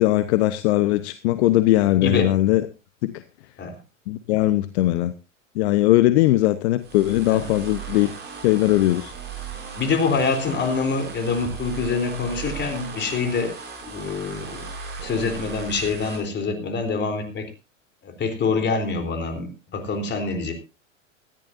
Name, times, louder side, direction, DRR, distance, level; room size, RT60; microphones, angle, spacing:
voice 1, 0.0-2.6 3.0-3.2 4.1-5.1 5.5-8.1 8.4-9.1, left 16 dB, 55° left, 13 dB, 1.0 m, -20 dB
sound 1, 6.8-16.2, right 5 dB, 25° right, 6.8 m, -37 dB
voice 2, 9.7-13.5 13.8-14.7 15.0-17.5 18.0-20.5, left 4 dB, 25° left, 7 dB, 3.7 m, -25 dB
19.0 x 14.0 x 2.7 m, 0.28 s
hypercardioid pair, 100°, 39 cm